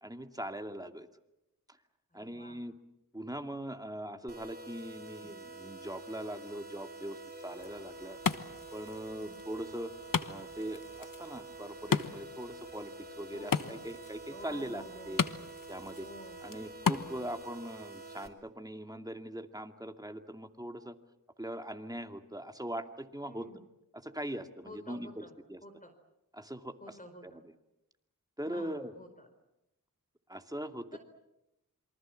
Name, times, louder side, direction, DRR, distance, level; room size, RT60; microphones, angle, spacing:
voice 1, 0.0-1.1 2.1-2.7 3.1-8.2 8.7-9.9 10.3-15.2 15.7-16.1 16.4-21.0 21.4-23.5 23.9-25.6 26.3-27.0 27.2-27.3 28.4-28.9 30.3-31.0, right 1 dB, 10° right, 6 dB, 2.3 m, -41 dB
voice 2, 2.1-2.6 5.0-5.3 9.1-9.4 13.3-13.8 14.3-15.4 16.0-16.4 23.2-23.6 24.6-25.3 25.6-25.9 26.8-27.4 28.5-29.3 30.9-31.0, equal, 25° left, 6 dB, 4.6 m, -51 dB
sound 1, 4.3-18.3, right 2 dB, 30° right, 4.0 m, -48 dB
Wood, 7.4-17.4, left 6 dB, 75° left, 1.2 m, -37 dB
27.5 x 24.0 x 7.4 m, 0.88 s
wide cardioid pair, 50°, 33 cm